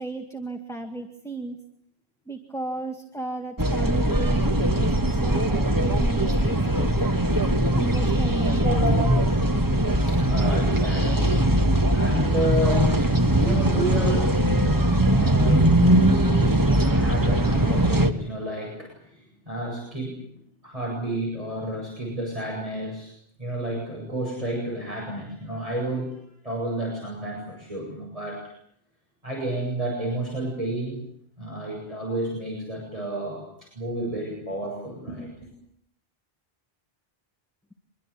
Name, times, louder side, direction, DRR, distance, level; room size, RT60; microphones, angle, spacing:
voice 1, 0.0-1.6 2.3-4.9 5.1-6.9 7.7-8.8, right 2 dB, 5° left, 3 dB, 2.0 m, -34 dB
sound 1, 3.6-18.1, right 1 dB, 20° right, 1.4 m, -21 dB
voice 2, 8.6-20.2 20.6-23.1 23.4-26.2 26.4-28.5 29.2-31.0 31.4-35.5, right 1 dB, 35° right, -2 dB, 8.2 m, -31 dB
26.0 x 22.5 x 8.5 m, 0.68 s
omnidirectional pair, 1.0 m